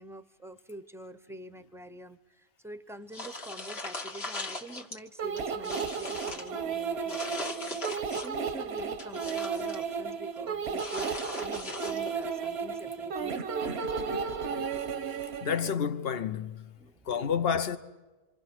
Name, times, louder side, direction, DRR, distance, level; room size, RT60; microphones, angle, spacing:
voice 1, 0.0-7.5 7.9-13.5 16.8-17.1, right 1 dB, 5° right, 0.6 m, -45 dB
sound 1, 3.1-5.0 5.4-6.5 7.1-8.4 8.8-9.8 10.8-12.3, left 2 dB, 85° left, 2.1 m, -39 dB
sound 2, 5.2-15.7, right 6 dB, 90° right, 1.2 m, -34 dB
voice 2, 15.4-16.8 17.0-17.8, left 7 dB, 70° left, 1.2 m, -29 dB
26.5 x 26.0 x 6.1 m
omnidirectional pair, 1.0 m